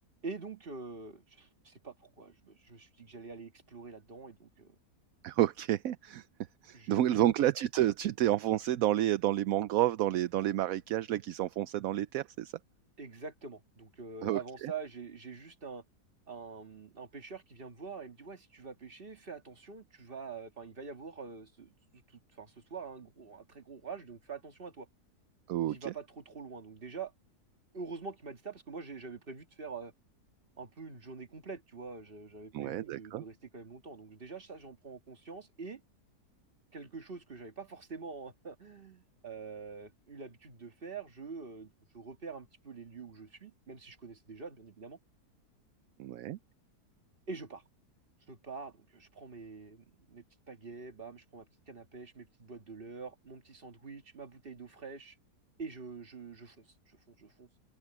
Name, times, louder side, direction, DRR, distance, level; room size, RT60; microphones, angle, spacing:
voice 1, 0.2-4.8 6.7-7.2 13.0-15.8 16.3-24.9 25.7-27.1 27.7-29.9 30.6-35.8 36.7-45.0 47.3-47.6 48.3-55.2 55.6-57.5, right 4 dB, 35° right, 2.0 m, -45 dB
voice 2, 5.2-6.3 6.6-12.5 14.2-14.7 25.5-25.9 32.5-33.2 46.0-46.4, right 13 dB, 70° right, 1.0 m, -30 dB
omnidirectional pair, 1.7 m